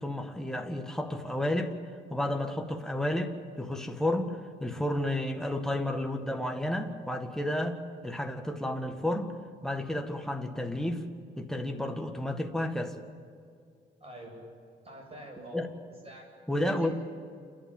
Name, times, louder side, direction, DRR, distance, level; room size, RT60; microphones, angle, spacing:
voice 1, 0.0-1.7 2.1-9.3 9.6-11.0 11.4-13.0 15.5-15.7 16.5-16.9, left 1 dB, ahead, 4 dB, 1.8 m, -31 dB
voice 2, 14.0-14.5 14.8-15.6 16.0-16.3 16.5-16.9, right 1 dB, 30° right, 0 dB, 8.0 m, -45 dB
28.5 x 12.0 x 9.0 m, 2.2 s
cardioid pair, 90°, 20 cm